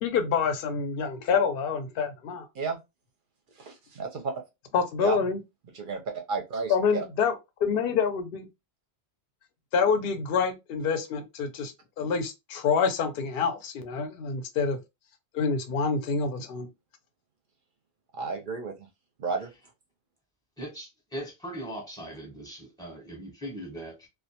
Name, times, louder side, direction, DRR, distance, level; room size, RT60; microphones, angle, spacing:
voice 1, 0.0-2.5 4.7-5.4 6.7-8.5 9.7-14.8 15.3-16.7, left 5 dB, 65° left, 0.7 m, -27 dB
voice 2, 3.6-4.3 5.0-5.2 5.7-6.0 6.3-7.0 18.1-18.7 19.2-19.5, right 4 dB, 55° right, 0.7 m, -32 dB
voice 3, 20.6-24.1, right 1 dB, 5° left, 0.9 m, -39 dB
2.2 x 2.1 x 2.7 m
omnidirectional pair, 1.2 m